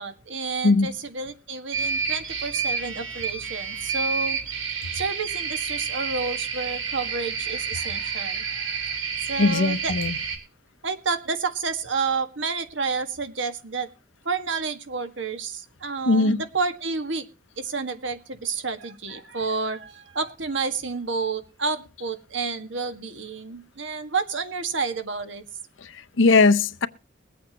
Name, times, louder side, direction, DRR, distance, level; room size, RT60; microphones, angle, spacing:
voice 1, 0.0-4.4 4.9-8.9 9.3-9.9 10.8-13.9 14.2-17.3 17.6-25.4, right 4 dB, 65° right, 1.7 m, -30 dB
sound 1, 1.7-10.4, right 5 dB, 80° right, 3.8 m, -29 dB
voice 2, 9.4-10.2 16.1-16.4 25.8-26.9, left 3 dB, 70° left, 0.8 m, -20 dB
22.0 x 8.5 x 2.9 m
head